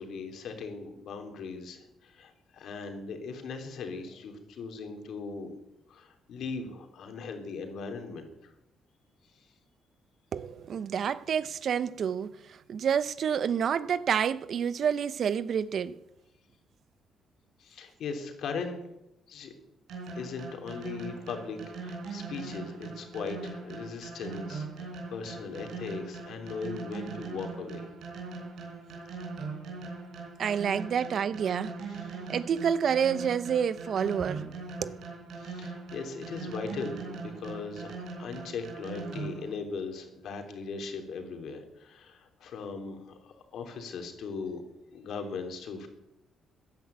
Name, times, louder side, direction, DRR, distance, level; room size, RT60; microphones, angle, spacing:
voice 1, 0.0-5.5 5.9-8.5 9.4-9.5 17.6-18.9 19.3-19.5 20.1-27.9 31.9-32.1 35.3-37.9 38.2-44.6 44.9-45.9, left 4 dB, 70° left, 3.2 m, -39 dB
voice 2, 10.3-12.3 12.7-16.0 30.4-31.7 32.3-34.5 34.8-35.0, right 7 dB, 60° right, 0.8 m, -28 dB
sound 1, 19.9-39.5, right 4 dB, 75° right, 4.3 m, -40 dB
15.5 x 10.5 x 8.1 m
cardioid pair, 90°, 0 cm